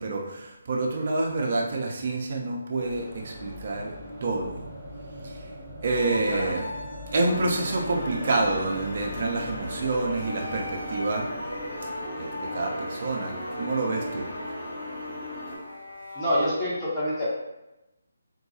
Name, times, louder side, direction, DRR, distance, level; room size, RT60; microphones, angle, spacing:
voice 1, 0.0-3.9 4.2-4.7 5.2-5.4 5.8-6.7 7.1-11.3 12.2-14.3, right 2 dB, 45° right, 0 dB, 0.6 m, -28 dB
sound 1, 2.7-14.5, equal, 20° right, 1.0 m, -43 dB
sound 2, 5.9-16.5, left 1 dB, 90° left, 1.0 m, -40 dB
sound 3, 7.2-15.6, left 1 dB, 35° left, 1.3 m, -37 dB
voice 2, 16.1-17.2, equal, 15° left, -10 dB, 1.0 m, -26 dB
4.0 x 2.2 x 2.8 m, 0.96 s
figure-of-eight pair, 145°, 0 cm